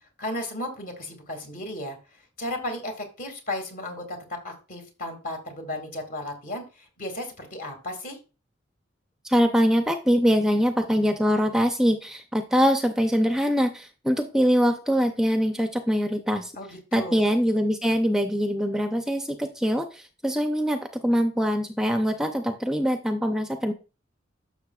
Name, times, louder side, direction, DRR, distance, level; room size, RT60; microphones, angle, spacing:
voice 1, 0.2-2.0 2.4-4.2 4.4-8.2 16.6-17.2, left 1 dB, 50° left, 4 dB, 2.1 m, -34 dB
voice 2, 9.2-16.5 16.9-23.7, equal, 5° right, 6 dB, 0.5 m, -23 dB
11.5 x 6.5 x 2.3 m, 0.33 s
head